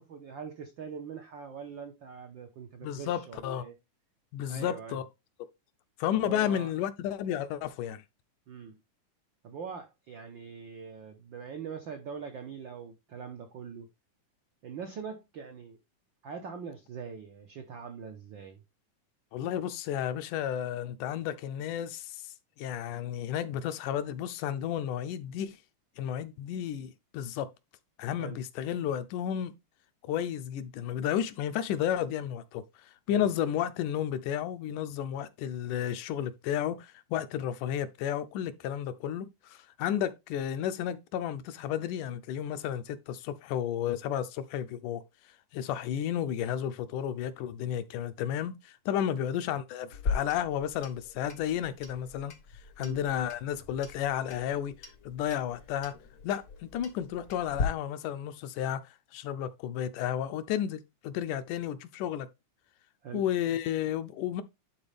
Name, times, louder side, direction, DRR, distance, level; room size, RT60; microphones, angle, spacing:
voice 1, 0.0-3.7 4.5-5.0 6.1-6.7 8.5-8.8 9.4-13.9 14.6-15.8 16.2-18.6 28.2-28.4 33.1-33.3 49.1-49.3 52.8-53.0 63.0-63.2, right 6 dB, 80° right, 1.0 m, -42 dB
voice 2, 2.8-3.6 4.3-5.0 6.0-8.0 19.3-22.2 22.6-25.6 26.0-27.5 28.0-29.5 30.0-32.6 33.1-45.0 45.5-52.3 52.8-54.7 55.1-55.9 56.2-58.8 59.1-62.3 63.1-64.4, left 10 dB, 80° left, 2.2 m, -32 dB
Clock, 49.9-57.6, left 5 dB, 65° left, 0.9 m, -39 dB
11.5 x 4.1 x 3.4 m
omnidirectional pair, 3.7 m